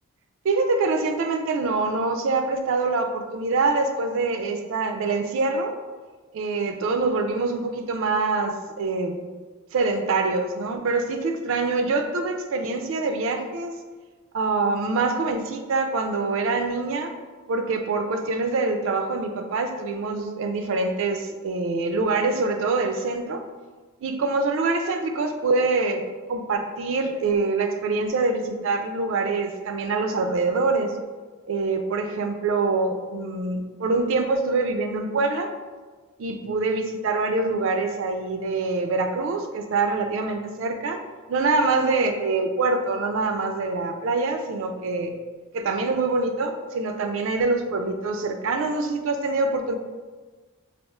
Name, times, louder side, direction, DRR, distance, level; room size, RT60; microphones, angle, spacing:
voice 1, 0.4-5.8 6.3-9.2 9.7-13.8 14.3-17.1 17.5-23.4 24.0-26.0 26.3-30.9 31.5-35.5 36.2-41.0 41.3-45.1 45.5-49.7, right 3 dB, 60° right, 6 dB, 0.3 m, -25 dB
4.2 x 2.4 x 2.3 m, 1.4 s
head